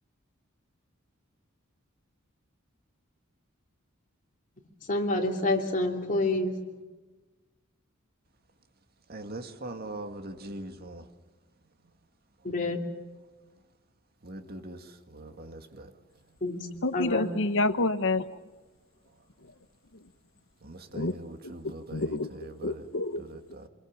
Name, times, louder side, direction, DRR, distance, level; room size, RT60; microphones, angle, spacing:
voice 1, 4.9-6.5 12.4-12.8 16.4-16.6 16.9-17.3, left 2 dB, 40° left, 1 dB, 3.2 m, -27 dB
voice 2, 9.1-11.1 14.2-15.9 20.6-22.9 23.2-23.7, right 2 dB, 50° right, 6 dB, 2.1 m, -42 dB
voice 3, 16.8-18.2 20.9-21.1 21.4-21.5 21.9-23.2, left 2 dB, 65° left, 12 dB, 1.1 m, -28 dB
26.5 x 22.5 x 7.4 m, 1.2 s
head